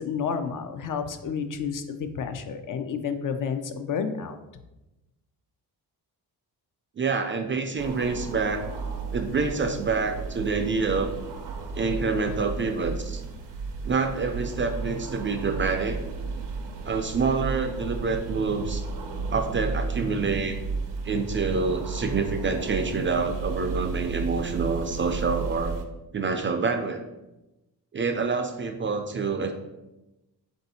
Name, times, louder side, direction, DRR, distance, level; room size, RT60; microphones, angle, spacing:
voice 1, 0.0-4.4, left 6 dB, 55° left, 8 dB, 0.5 m, -30 dB
voice 2, 7.0-8.7 9.1-11.2 11.7-13.2 13.8-16.0 16.8-18.8 19.3-20.6 21.0-25.8 26.1-27.0 27.9-29.5, right 4 dB, 30° right, 5 dB, 0.4 m, -27 dB
sound 1, 7.8-25.9, right 4 dB, 85° right, 0.7 m, -33 dB
3.9 x 2.7 x 4.1 m, 0.99 s
cardioid pair, 85°, 40 cm